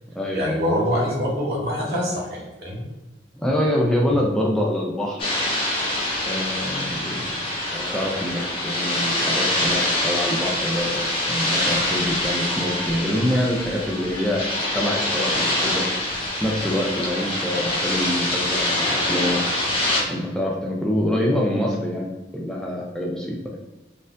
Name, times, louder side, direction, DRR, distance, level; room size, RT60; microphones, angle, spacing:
voice 1, 0.3-2.8 7.2-7.3, equal, 55° right, -3 dB, 1.0 m, -25 dB
voice 2, 3.3-5.2 6.3-7.2 7.7-14.5 14.7-15.8 16.4-19.4 20.1-23.4, left 1 dB, 5° left, -2 dB, 0.3 m, -25 dB
sound 1, 5.2-20.0, left 1 dB, 30° left, 0.8 m, -25 dB
4.0 x 2.5 x 2.5 m, 1.1 s
head